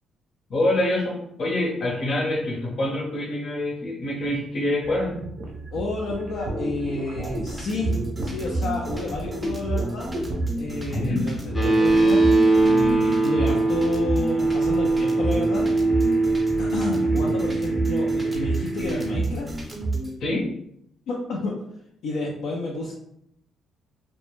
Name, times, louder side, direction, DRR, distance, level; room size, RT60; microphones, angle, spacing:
voice 1, 0.5-5.2 10.9-11.2 16.7-17.2 20.2-20.4, left 1 dB, 60° left, -2 dB, 0.8 m, -26 dB
sound 1, 4.8-11.7, right 1 dB, 70° right, 0.5 m, -34 dB
voice 2, 5.7-7.9 8.2-10.2 10.6-12.3 12.6-15.7 16.6-19.5 21.1-21.6 22.0-22.9, left 2 dB, 80° left, -3 dB, 0.4 m, -30 dB
sound 2, 7.2-20.1, right 2 dB, 15° right, 0.6 m, -30 dB
sound 3, 11.5-19.2, right 2 dB, 30° left, 0.5 m, -21 dB
2.1 x 2.0 x 3.0 m, 0.74 s
cardioid pair, 90°, 0 cm